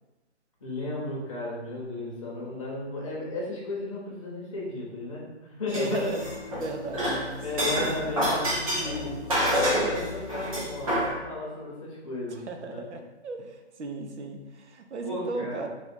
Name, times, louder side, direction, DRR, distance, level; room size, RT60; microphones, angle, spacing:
voice 1, 0.6-6.1 6.9-9.2 9.7-12.9 15.0-15.6, left 2 dB, 30° left, -4 dB, 0.8 m, -34 dB
sound 1, 5.7-6.7 6.9-11.1, equal, 30° right, 1.0 m, -27 dB
voice 2, 5.7-6.2 6.6-7.1 12.3-15.7, right 3 dB, 75° right, 5 dB, 0.7 m, -36 dB
sound 2, 6.1-11.2, left 6 dB, 5° right, 0.6 m, -42 dB
3.4 x 2.3 x 4.1 m, 1.1 s
hypercardioid pair, 170°, 34 cm